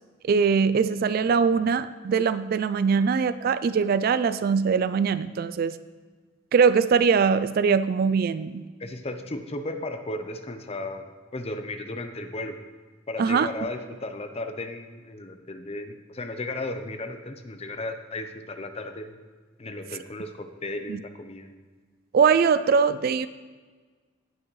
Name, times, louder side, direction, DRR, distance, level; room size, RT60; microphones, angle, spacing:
voice 1, 0.2-5.8 6.5-8.6 13.2-13.5 20.9-21.0 22.1-23.3, right 6 dB, 50° right, 14 dB, 0.3 m, -22 dB
voice 2, 8.8-12.6 13.1-19.2 19.6-21.5, left 2 dB, 30° left, 7 dB, 0.7 m, -35 dB
18.0 x 6.2 x 3.2 m, 1.4 s
head